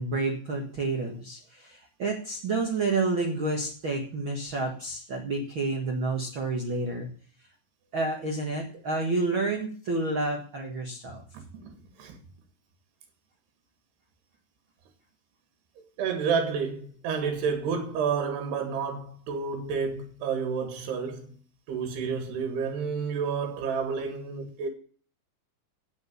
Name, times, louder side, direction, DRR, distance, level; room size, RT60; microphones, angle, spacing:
voice 1, 0.0-7.1 7.9-11.2, right 3 dB, 55° right, 1.4 m, -29 dB
voice 2, 16.0-21.3 21.7-24.7, right 6 dB, 70° right, 3.6 m, -30 dB
9.5 x 9.3 x 6.7 m
omnidirectional pair, 5.0 m